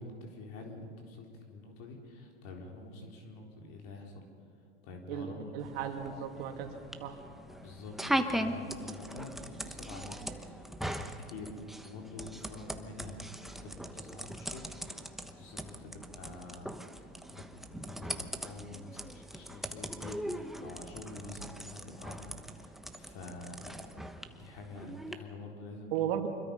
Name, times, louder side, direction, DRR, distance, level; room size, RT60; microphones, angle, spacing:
voice 1, 0.0-4.3 4.8-5.6 7.6-8.0 8.3-11.6 11.8-14.7 15.2-16.8 17.3-22.3 22.6-23.7 24.3-26.2, left 2 dB, 60° left, 1 dB, 4.1 m, -47 dB
voice 2, 5.1-6.7 7.0-7.2 25.9-26.3, right 9 dB, 65° right, 3 dB, 2.8 m, -35 dB
sound 1, 5.6-25.1, right 1 dB, ahead, 1.1 m, -40 dB
25.5 x 22.0 x 5.5 m, 2.2 s
hypercardioid pair, 110°, 33 cm